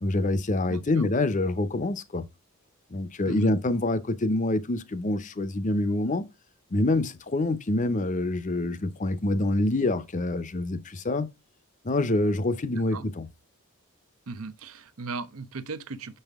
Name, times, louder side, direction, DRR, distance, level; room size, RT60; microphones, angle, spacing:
voice 1, 0.0-2.2 2.9-6.2 6.7-11.3 11.8-13.3, left 2 dB, 35° left, 0.7 m, -26 dB
voice 2, 0.7-1.1 3.3-3.5 12.9-13.0 14.3-16.2, right 4 dB, 75° right, 0.7 m, -37 dB
6.4 x 5.5 x 3.5 m
head